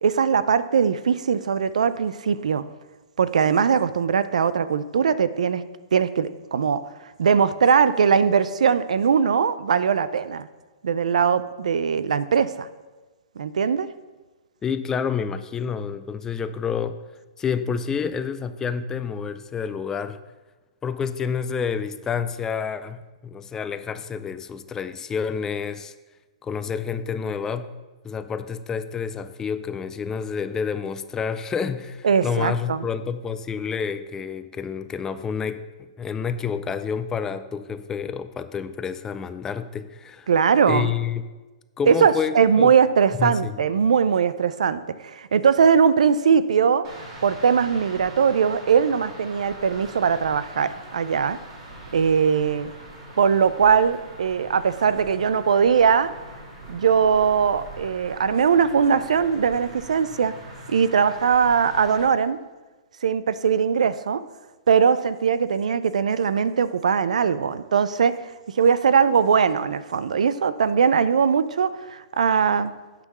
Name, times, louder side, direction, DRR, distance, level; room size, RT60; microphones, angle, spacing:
voice 1, 0.0-2.6 3.2-5.6 5.9-6.8 7.2-10.5 10.8-12.7 13.4-13.9 32.0-32.8 40.3-40.9 41.9-46.8 47.2-51.4 51.9-52.7 53.2-56.1 56.7-60.3 60.7-62.4 63.0-64.2 64.7-68.2 68.6-72.7, right 6 dB, 85° right, 15 dB, 0.4 m, -20 dB
voice 2, 14.6-17.0 17.4-20.2 20.8-25.9 26.4-27.7 28.0-35.6 36.0-40.3 40.7-41.2 41.8-42.8 43.2-43.6, left 6 dB, 15° left, 11 dB, 0.4 m, -29 dB
sound 1, 46.8-62.0, right 1 dB, 50° right, 2.7 m, -42 dB
9.1 x 3.7 x 6.6 m, 1.2 s
hypercardioid pair, 140°, 4 cm